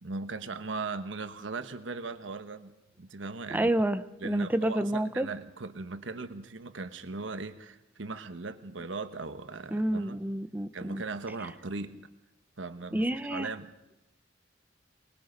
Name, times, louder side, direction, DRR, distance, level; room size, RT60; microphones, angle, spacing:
voice 1, 0.0-3.7 4.2-10.2 10.7-12.1 12.6-13.7, right 3 dB, 90° right, 10 dB, 1.2 m, -38 dB
voice 2, 3.5-5.3 9.7-11.0 12.9-13.5, right 1 dB, 10° right, 11 dB, 0.8 m, -29 dB
25.0 x 21.0 x 5.3 m, 0.95 s
head